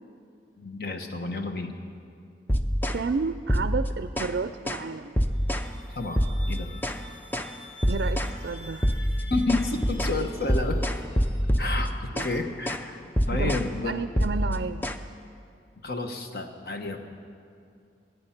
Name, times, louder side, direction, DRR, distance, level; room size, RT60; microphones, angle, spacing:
voice 1, 0.6-1.7 5.9-6.2 6.5-6.7 9.3-10.8 11.6-11.9 12.2-13.0 13.3-13.9 15.8-17.0, left 2 dB, 55° left, 5 dB, 1.2 m, -30 dB
sound 1, 2.5-3.0 3.5-4.4 4.7-4.9 5.2-5.7 6.2-7.0 7.3-7.5 7.8-8.4 8.8-12.4 12.7-12.9 13.2-13.7 14.2-15.0, equal, 10° left, 0.4 m, -26 dB
voice 2, 2.9-5.2 7.9-9.0 12.1-12.2 13.3-13.5 13.8-14.8, right 4 dB, 70° right, 11 dB, 0.4 m, -31 dB
sound 2, 5.3-11.9, left 2 dB, 75° left, 1.8 m, -49 dB
23.0 x 9.5 x 5.9 m, 2.4 s
head